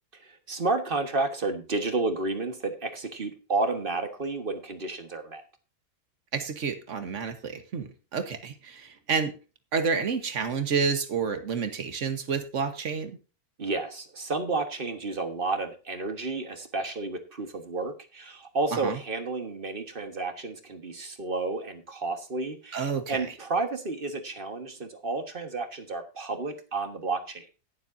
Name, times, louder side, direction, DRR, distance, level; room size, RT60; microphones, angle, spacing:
voice 1, 0.2-5.4 13.6-27.5, right 3 dB, 35° right, 7 dB, 1.6 m, -31 dB
voice 2, 6.3-9.3 9.7-13.2 18.7-19.0 22.7-23.3, right 5 dB, 55° right, 9 dB, 1.6 m, -29 dB
19.0 x 7.4 x 2.7 m, 0.32 s
omnidirectional pair, 1.6 m